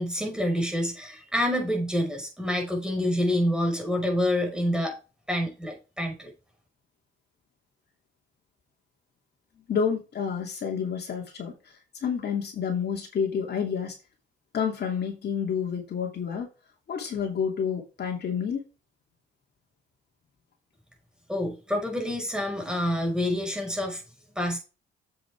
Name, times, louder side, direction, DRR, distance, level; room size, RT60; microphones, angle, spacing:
voice 1, 0.0-4.9 5.3-6.3 21.3-24.0 24.4-24.6, left 1 dB, 5° right, 1 dB, 5.4 m, -27 dB
voice 2, 9.7-14.0 14.5-16.5 16.9-18.6, left 7 dB, 55° left, 1 dB, 2.7 m, -29 dB
8.4 x 8.0 x 3.6 m, 0.31 s
cardioid pair, 90°, 20 cm